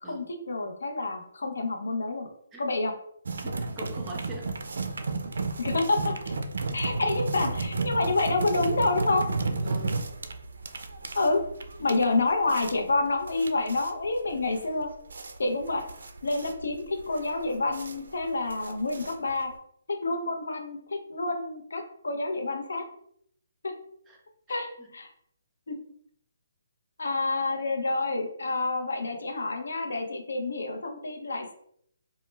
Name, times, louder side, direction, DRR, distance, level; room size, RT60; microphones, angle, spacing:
voice 1, 0.0-2.3 2.6-2.9 5.6-6.3 6.7-9.2 11.1-11.4 11.8-14.9 15.4-15.8 16.2-19.5 19.9-22.8 23.6-23.7 24.5-25.1 25.7-25.8 27.0-31.5, left 3 dB, 80° left, 4 dB, 0.5 m, -28 dB
sound 1, 3.3-19.6, right 3 dB, 75° right, 0.3 m, -33 dB
voice 2, 3.4-4.5 9.5-10.1 24.1-24.2 24.5-24.9, right 1 dB, 10° right, -1 dB, 0.4 m, -43 dB
2.0 x 2.0 x 3.2 m, 0.68 s
hypercardioid pair, 155°, 0 cm